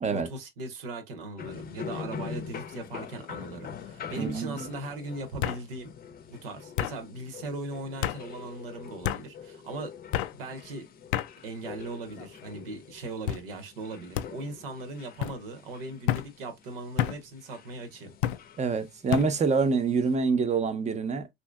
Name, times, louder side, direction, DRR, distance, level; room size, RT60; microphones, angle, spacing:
voice 1, 0.1-5.9 6.3-9.9 10.3-10.9 11.4-18.1, right 2 dB, 70° right, 0.9 m, -39 dB
sound 1, 1.4-20.2, left 7 dB, 30° left, 0.7 m, -45 dB
sound 2, 2.0-2.3 2.7-3.3 4.3-4.4 5.4-5.6 6.8-7.0 8.0-8.2 9.0-9.2 10.1-10.3 11.1-11.3 12.1-12.5 13.3-13.5 14.1-14.3 15.2-15.4 16.1-16.3 17.0-17.2 18.2-18.4 19.1-19.3, left 12 dB, 65° left, 0.4 m, -30 dB
voice 2, 4.2-4.7 18.6-21.3, right 4 dB, 25° right, 0.7 m, -26 dB
4.3 x 2.6 x 2.2 m
figure-of-eight pair, 65°, 29 cm